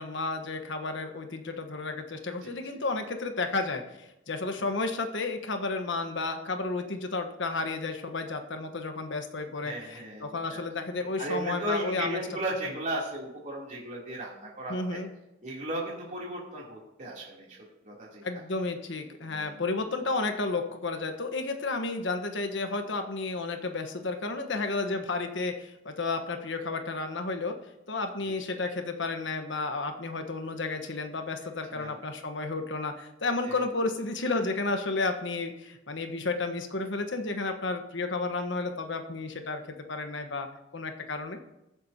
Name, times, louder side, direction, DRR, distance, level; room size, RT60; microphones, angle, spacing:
voice 1, 0.0-12.2 14.7-15.1 18.2-27.6 27.9-40.5 40.7-41.4, left 3 dB, 70° left, 5 dB, 1.3 m, -32 dB
voice 2, 9.6-10.6 11.2-15.0 15.4-17.6 17.8-18.2 19.2-19.6 28.2-28.3 31.7-32.0 33.4-33.5, right 1 dB, 40° right, -5 dB, 3.3 m, -36 dB
21.5 x 7.6 x 2.9 m, 0.93 s
head